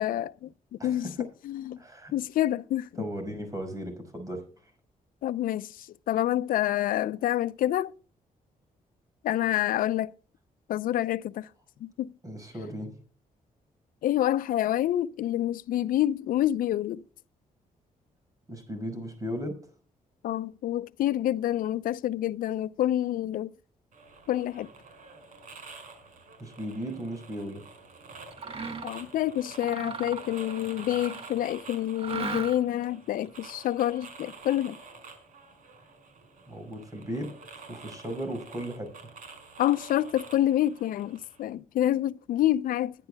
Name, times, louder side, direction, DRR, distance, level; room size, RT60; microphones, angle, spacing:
voice 1, 0.0-1.8 2.1-2.9 5.2-5.7 6.1-7.9 9.2-10.1 10.7-11.5 11.8-12.1 14.0-17.0 20.2-23.5 24.3-24.7 28.8-34.8 39.6-42.9, left 12 dB, 90° left, 0.6 m, -27 dB
voice 2, 0.8-1.3 1.8-2.1 3.0-4.4 12.2-12.9 18.5-19.6 26.4-27.6 36.5-37.3 37.7-38.9, equal, 25° right, 5.7 m, -36 dB
sound 1, 23.9-41.4, right 4 dB, 70° right, 5.3 m, -49 dB
Mechanisms, 28.3-29.0 29.5-31.4 32.0-32.8, right 5 dB, 45° right, 1.8 m, -37 dB
21.5 x 10.5 x 2.3 m
cardioid pair, 115°, 14 cm